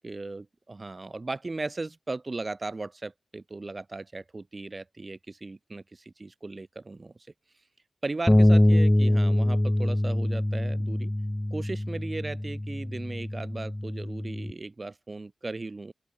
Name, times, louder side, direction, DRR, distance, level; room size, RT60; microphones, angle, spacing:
voice 1, 0.0-7.1 8.0-11.1 11.5-15.9, right 3 dB, 40° right, 2.0 m, -37 dB
Bass guitar, 8.3-14.5, left 1 dB, 15° left, 0.7 m, -24 dB
open air
cardioid pair, 55°, 0 cm